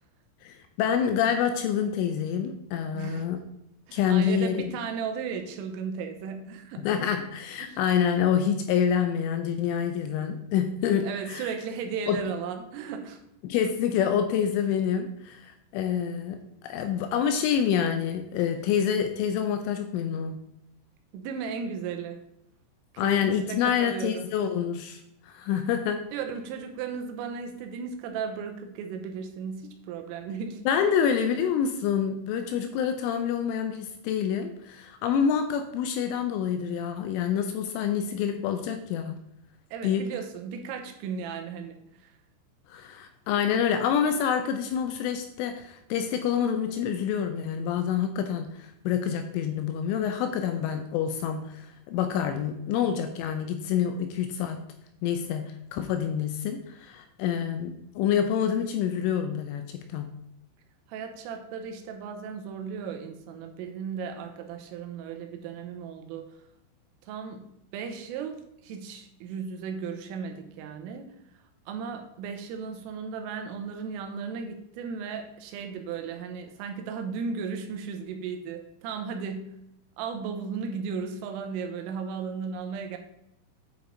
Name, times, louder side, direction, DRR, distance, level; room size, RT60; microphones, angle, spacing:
voice 1, 0.4-3.4 3.9-4.7 6.8-11.5 12.1-12.2 13.4-16.4 16.6-20.4 23.0-26.1 30.7-39.1 39.8-40.1 42.7-54.6 55.0-60.1, left 8 dB, 85° left, 7 dB, 2.9 m, -27 dB
voice 2, 2.9-3.3 3.9-6.9 7.6-7.8 11.0-13.2 21.1-22.3 23.0-24.2 26.1-30.6 39.7-42.1 60.9-66.3 67.1-71.2 71.7-79.6 80.0-83.0, right 6 dB, 80° right, 5 dB, 3.3 m, -35 dB
9.4 x 5.1 x 3.8 m, 0.80 s
omnidirectional pair, 6.0 m